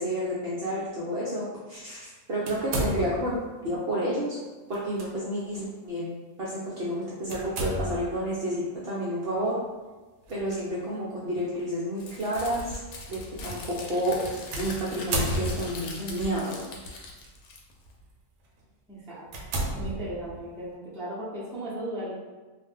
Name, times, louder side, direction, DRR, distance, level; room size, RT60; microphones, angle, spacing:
voice 1, 0.0-3.3 3.6-4.4 4.7-6.1 6.4-9.5 10.3-12.7 13.1-14.2 14.6-16.6, equal, 55° right, -8 dB, 0.7 m, -30 dB
sound 1, 2.5-3.4 4.7-5.1 5.5-5.7 7.3-8.2 10.3-10.6 11.4-11.5 14.5-15.9 16.8-17.3 17.8-18.0 18.6-18.7 19.3-20.5, right 1 dB, 75° right, 1.0 m, -32 dB
Crumpling crinkling, 12.0-17.9, left 2 dB, 90° left, 1.1 m, -41 dB
voice 2, 18.9-19.3 19.7-22.1, right 1 dB, 5° left, -10 dB, 0.5 m, -36 dB
2.5 x 2.1 x 3.3 m, 1.3 s
omnidirectional pair, 1.5 m